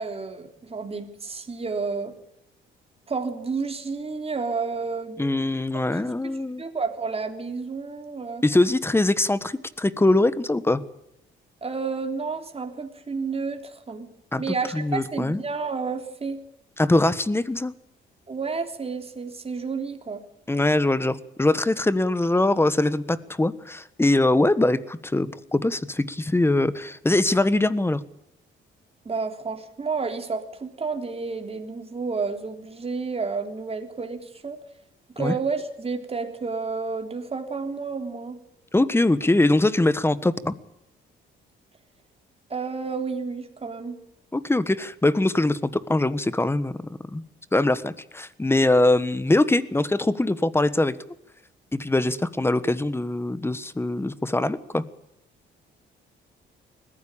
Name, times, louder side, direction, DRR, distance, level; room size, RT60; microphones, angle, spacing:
voice 1, 0.0-2.1 3.1-5.2 5.7-8.4 11.6-14.1 14.4-16.4 18.3-20.2 29.1-34.6 35.2-38.4 42.5-44.0, right 4 dB, 30° right, 5 dB, 3.5 m, -31 dB
voice 2, 5.2-6.6 8.4-10.8 14.3-15.4 16.8-17.7 20.5-28.0 35.2-35.3 38.7-40.5 44.3-46.8 47.1-47.2 47.5-51.0 51.7-54.8, left 2 dB, 10° left, 16 dB, 1.3 m, -22 dB
20.5 x 15.0 x 8.6 m, 0.84 s
cardioid pair, 90°, 20 cm